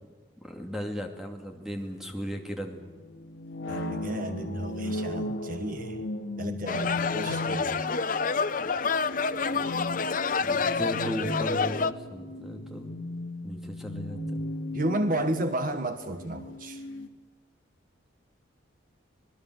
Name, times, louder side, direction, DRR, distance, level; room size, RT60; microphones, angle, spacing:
voice 1, 0.4-2.9 10.4-12.9 13.4-14.4, equal, ahead, 3 dB, 2.6 m, -36 dB
sound 1, 1.7-17.1, left 1 dB, 70° left, 2.2 m, -37 dB
voice 2, 3.7-6.0 6.4-7.8 14.7-16.8, right 1 dB, 45° right, 8 dB, 1.3 m, -32 dB
sound 2, 6.7-11.9, left 5 dB, 40° left, 0.7 m, -28 dB
26.0 x 19.5 x 7.9 m, 1.4 s
head